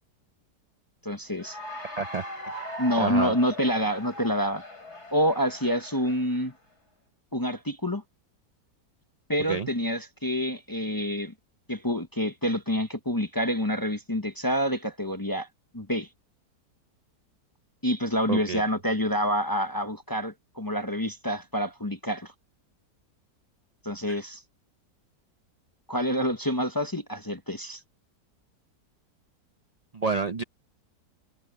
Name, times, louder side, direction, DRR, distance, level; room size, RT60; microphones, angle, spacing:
voice 1, 1.0-1.6 2.8-4.6 5.1-6.5 7.3-8.0 9.3-11.3 11.7-15.5 15.7-16.1 17.8-22.3 23.8-24.4 25.9-27.8, equal, 15° left, 0.7 m, -27 dB
Cheering / Applause, 1.3-6.5, left 1 dB, 65° left, 8.1 m, -40 dB
voice 2, 3.0-3.3 9.5-9.7 18.3-18.6 24.1-24.2 29.9-30.4, right 4 dB, 55° right, 0.4 m, -29 dB
omnidirectional pair, 1.8 m